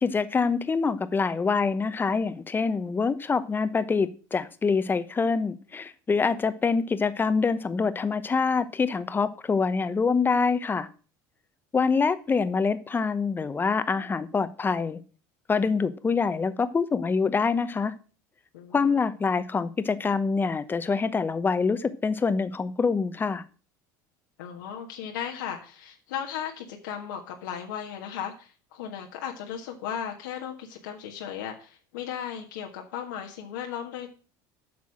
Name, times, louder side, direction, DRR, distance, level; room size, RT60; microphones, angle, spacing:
voice 1, 0.0-10.9 11.7-15.0 15.5-17.9 18.7-23.4, left 5 dB, 20° left, 13 dB, 1.0 m, -25 dB
voice 2, 18.5-19.0 24.4-34.1, left 8 dB, 85° left, 1 dB, 1.7 m, -36 dB
8.6 x 6.1 x 7.3 m, 0.37 s
supercardioid pair, 100°, 10 cm